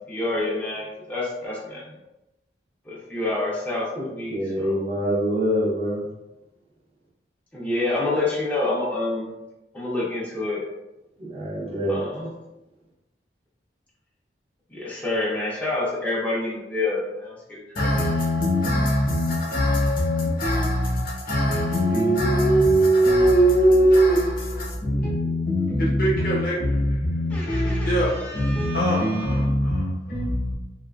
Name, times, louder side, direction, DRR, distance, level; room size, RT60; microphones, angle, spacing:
voice 1, 0.1-1.9 2.9-4.8 7.5-9.3 9.7-10.6 11.9-12.2 14.7-17.9 27.3-29.4, left 2 dB, 10° left, 0.5 m, -28 dB
voice 2, 4.3-6.1 11.2-12.3, equal, 35° right, 0.6 m, -25 dB
voice 3, 17.8-30.5, equal, 55° left, 0.8 m, -21 dB
2.6 x 2.3 x 2.3 m
head